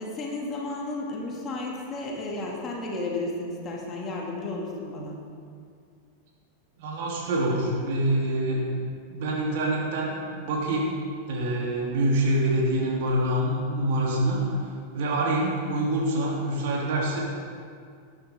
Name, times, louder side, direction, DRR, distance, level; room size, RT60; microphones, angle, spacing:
voice 1, 0.0-5.2, left 2 dB, 25° left, -2 dB, 2.5 m, -33 dB
voice 2, 6.8-8.6 9.1-10.9 11.3-14.5 14.9-17.2, right 1 dB, 50° right, -4 dB, 3.3 m, -26 dB
19.0 x 10.5 x 3.8 m, 2.2 s
figure-of-eight pair, 90°, 0 cm